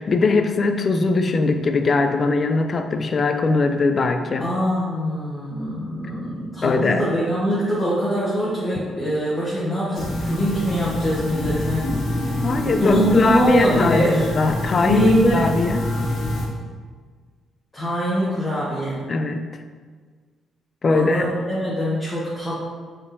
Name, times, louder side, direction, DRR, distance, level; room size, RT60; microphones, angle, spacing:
voice 1, 0.0-4.5 6.6-7.0 12.4-15.8 19.1-19.4 20.8-21.3, left 3 dB, 40° left, 7 dB, 0.4 m, -20 dB
voice 2, 4.4-11.9 12.8-14.3 14.7-15.4 17.7-19.0 20.9-22.6, equal, 15° left, -8 dB, 1.1 m, -22 dB
sound 1, 9.9-16.5, left 1 dB, 65° left, 1.3 m, -26 dB
5.0 x 3.7 x 2.7 m, 1.5 s
cardioid pair, 90°, 0 cm